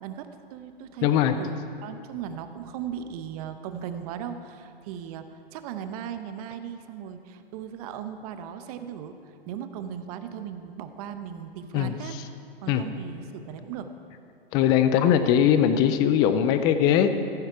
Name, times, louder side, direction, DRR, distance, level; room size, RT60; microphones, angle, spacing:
voice 1, 0.0-9.2 9.5-12.3 12.6-13.9, right 8 dB, 40° right, 9 dB, 0.9 m, -37 dB
voice 2, 1.0-1.3 11.7-12.2 12.7-12.8 14.5-17.1, left 9 dB, 15° left, 10 dB, 0.3 m, -21 dB
15.5 x 9.4 x 4.6 m, 2.6 s
hypercardioid pair, 130°, 30 cm